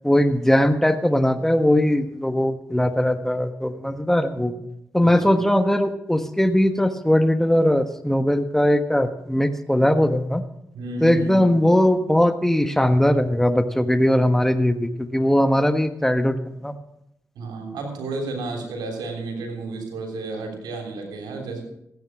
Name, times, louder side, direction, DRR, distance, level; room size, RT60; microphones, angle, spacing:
voice 1, 0.0-4.5 4.9-10.4 11.0-16.7, left 1 dB, 5° left, 9 dB, 1.3 m, -20 dB
voice 2, 5.0-5.4 10.7-11.5 17.4-21.6, right 3 dB, 90° right, 1 dB, 3.4 m, -32 dB
15.5 x 9.4 x 6.1 m, 0.79 s
supercardioid pair, 40°, 7 cm